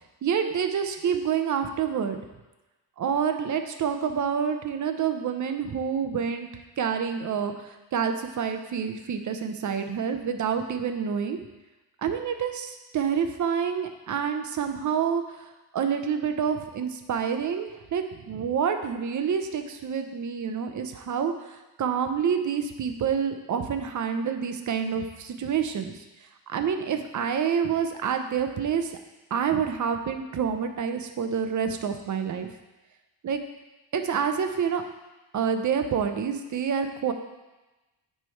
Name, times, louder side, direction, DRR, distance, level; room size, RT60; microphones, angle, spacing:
voice 1, 0.2-2.2 3.0-6.5 6.8-11.4 12.0-15.4 15.7-25.9 26.5-28.9 29.3-32.5 33.2-33.4 33.9-34.8 35.3-37.1, right 7 dB, 40° right, 7 dB, 0.6 m, -28 dB
9.1 x 3.4 x 4.5 m, 1.1 s
cardioid pair, 120°, 46 cm